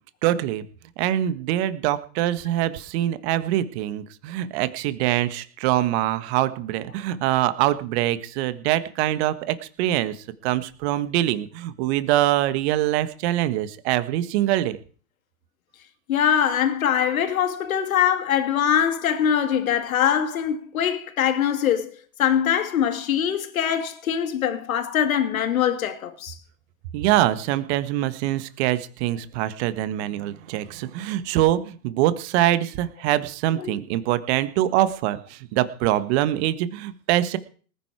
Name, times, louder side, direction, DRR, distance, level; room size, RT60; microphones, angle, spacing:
voice 1, 0.2-0.6 1.0-14.8 26.9-37.4, right 13 dB, 50° right, 1.6 m, -24 dB
voice 2, 16.1-21.9 22.2-26.4 33.6-33.7, left 9 dB, 80° left, 2.4 m, -23 dB
19.5 x 10.5 x 4.8 m
hypercardioid pair, 120°, 41 cm